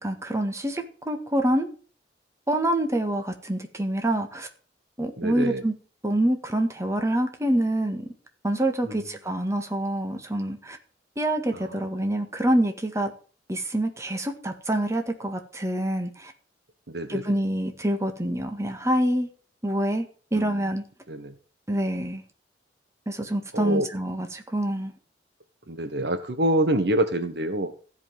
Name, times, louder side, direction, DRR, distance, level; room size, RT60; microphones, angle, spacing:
voice 1, 0.0-1.7 2.5-4.5 5.0-5.7 6.0-8.1 8.4-10.8 11.2-13.1 13.5-16.3 17.1-19.3 19.6-20.8 21.7-22.2 23.1-24.9, right 1 dB, 15° right, 5 dB, 1.8 m, -26 dB
voice 2, 5.2-5.6 8.9-9.0 16.9-17.2 20.3-20.6 21.1-21.3 23.5-23.9 25.7-27.7, right 1 dB, 60° right, 9 dB, 1.3 m, -26 dB
15.0 x 5.6 x 7.4 m, 0.40 s
head